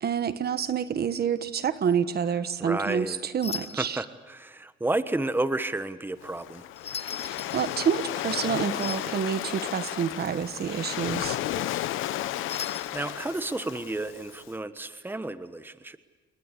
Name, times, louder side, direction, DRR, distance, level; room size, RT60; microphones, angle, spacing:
voice 1, 0.0-4.0 7.2-11.4, right 7 dB, 55° right, 12 dB, 1.4 m, -28 dB
sound 1, 1.4-1.7 3.4-4.0 6.8-8.5 8.8-9.2 12.5-13.1, left 6 dB, 30° left, 0.9 m, -39 dB
voice 2, 2.6-3.2 3.8-6.7 11.6-11.9 12.6-16.0, right 2 dB, 10° right, 12 dB, 1.2 m, -32 dB
Waves surf, 6.2-14.4, left 14 dB, 85° left, 0.8 m, -33 dB
30.0 x 21.0 x 8.4 m, 1.2 s
cardioid pair, 90°, 20 cm